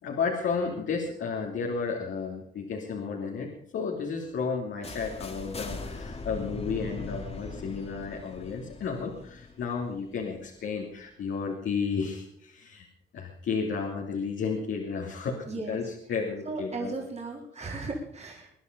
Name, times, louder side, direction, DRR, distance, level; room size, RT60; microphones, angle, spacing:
voice 1, 0.0-12.9 13.1-16.9, left 5 dB, 70° left, -1 dB, 2.9 m, -32 dB
sound 1, 4.8-10.7, left 3 dB, 30° left, 2.4 m, -40 dB
voice 2, 15.5-15.8 16.5-18.5, right 3 dB, 35° right, -1 dB, 3.8 m, -36 dB
22.5 x 10.5 x 5.4 m, 0.72 s
cardioid pair, 90°, 20 cm